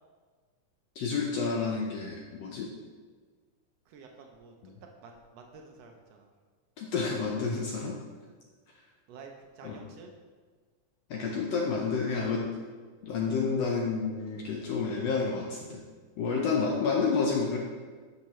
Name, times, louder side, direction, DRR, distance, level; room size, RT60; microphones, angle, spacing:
voice 1, 1.0-2.7 4.6-4.7 6.8-8.0 9.6-9.8 11.1-12.4 13.0-15.8 16.2-17.6, left 5 dB, 75° left, -1 dB, 1.6 m, -29 dB
voice 2, 3.9-4.5 4.8-6.3 9.1-10.1 13.6-13.8, right 4 dB, 85° right, 2 dB, 1.4 m, -50 dB
10.5 x 6.5 x 3.1 m, 1.5 s
omnidirectional pair, 3.7 m